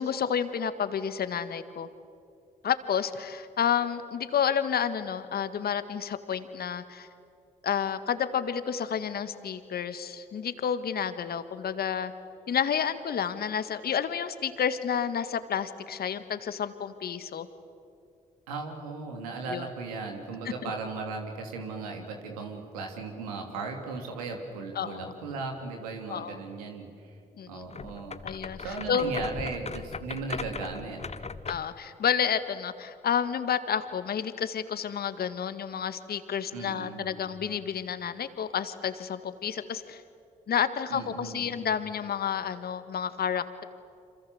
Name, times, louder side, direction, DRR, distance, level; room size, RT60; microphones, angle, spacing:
voice 1, 0.0-1.9 2.6-7.1 7.6-12.1 12.5-17.5 19.5-19.7 20.6-20.7 24.8-25.1 26.1-26.4 27.4-27.7 28.2-29.2 31.5-40.0 40.5-43.6, left 8 dB, 60° left, 11 dB, 1.8 m, -30 dB
voice 2, 18.5-27.1 27.5-28.2 28.6-31.0 36.5-37.1 40.9-41.5, right 4 dB, 90° right, 3 dB, 3.1 m, -37 dB
sound 1, 27.7-31.8, left 5 dB, 35° left, 1.3 m, -39 dB
27.5 x 27.0 x 8.0 m, 2.5 s
hypercardioid pair, 40°, 18 cm